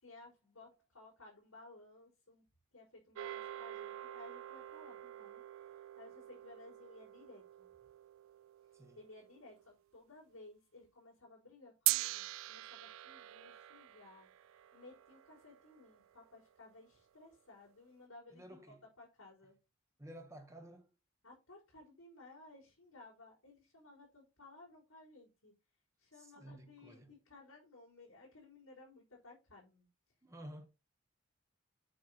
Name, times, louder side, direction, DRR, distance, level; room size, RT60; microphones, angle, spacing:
voice 1, 0.0-2.4 2.7-7.7 9.0-14.3 14.7-19.6 21.2-25.5 26.0-29.9, left 2 dB, 85° left, 4.4 m, -58 dB
sound 1, 3.1-9.6 11.9-16.3, right 18 dB, 75° right, 0.3 m, -43 dB
voice 2, 8.7-9.0 18.3-18.8 20.0-20.9 26.2-27.1 30.2-30.7, right 1 dB, 15° right, 1.3 m, -52 dB
7.8 x 5.7 x 4.3 m
head